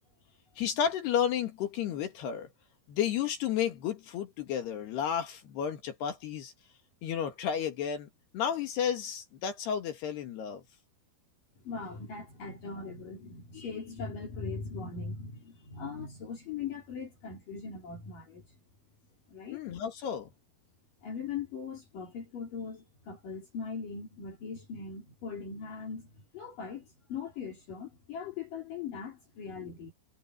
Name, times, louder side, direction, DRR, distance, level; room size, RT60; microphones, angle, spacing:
voice 1, 0.6-2.5 2.9-6.5 7.0-10.6 19.5-20.3, left 8 dB, 60° left, 3.5 m, -32 dB
voice 2, 11.6-18.4 19.3-19.6 21.0-29.9, left 5 dB, 45° left, 4.6 m, -40 dB
omnidirectional pair, 5.9 m